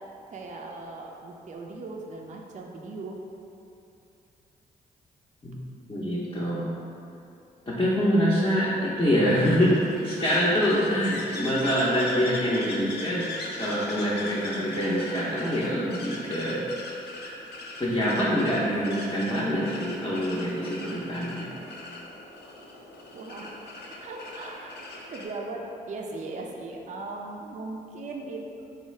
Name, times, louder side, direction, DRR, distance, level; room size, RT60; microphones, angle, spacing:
voice 1, 0.3-3.2 8.4-9.1 23.1-23.6 24.0-24.8 25.1-28.6, right 3 dB, 40° right, 0 dB, 0.4 m, -38 dB
voice 2, 5.9-6.7 7.7-13.3 13.6-16.6 17.2-17.3 17.8-21.5, equal, 25° left, -9 dB, 0.7 m, -25 dB
sound 1, 9.4-25.3, left 2 dB, 60° left, 0.6 m, -40 dB
3.5 x 2.4 x 3.2 m, 2.7 s
hypercardioid pair, 45°, 19 cm